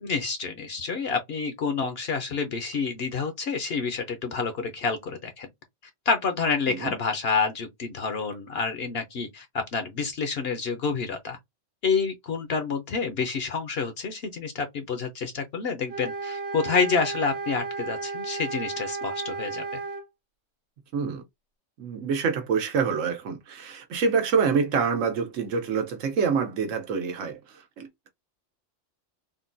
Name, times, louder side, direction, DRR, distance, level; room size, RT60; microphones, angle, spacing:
voice 1, 0.0-5.5 6.1-11.4 11.8-19.6, left 5 dB, 60° left, 0.8 m, -28 dB
sound 1, 15.9-20.1, right 4 dB, 60° right, 0.9 m, -33 dB
voice 2, 20.9-21.2 21.8-28.1, right 5 dB, 90° right, 1.2 m, -26 dB
3.7 x 2.2 x 2.5 m
omnidirectional pair, 1.3 m